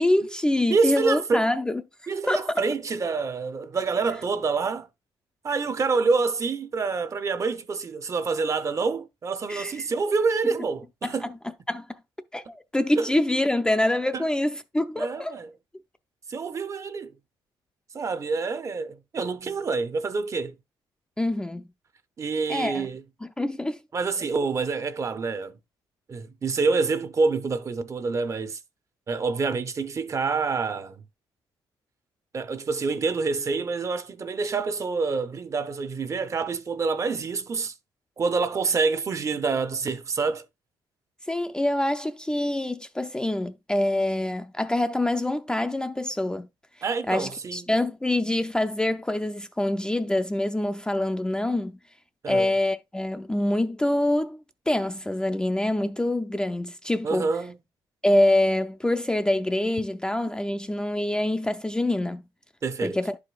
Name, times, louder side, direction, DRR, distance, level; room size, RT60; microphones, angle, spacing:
voice 1, 0.0-1.8 2.3-2.6 9.5-9.7 11.0-11.1 11.7-11.9 12.3-15.4 21.2-21.6 22.5-22.9 23.4-23.8 41.3-46.5 47.1-51.8 52.3-54.4 54.7-57.3 58.0-62.2 62.8-63.2, left 1 dB, 10° left, 0.4 m, -25 dB
voice 2, 0.7-1.5 2.1-4.9 5.4-11.3 13.0-13.1 14.1-14.3 15.0-15.5 16.3-17.1 17.9-20.5 22.2-23.0 23.9-25.5 26.1-28.6 29.1-31.0 32.3-37.7 38.2-40.4 46.8-47.7 52.2-52.5 57.0-57.6 62.6-63.0, right 4 dB, 35° right, 0.6 m, -27 dB
11.0 x 4.8 x 2.3 m
cardioid pair, 110°, 9 cm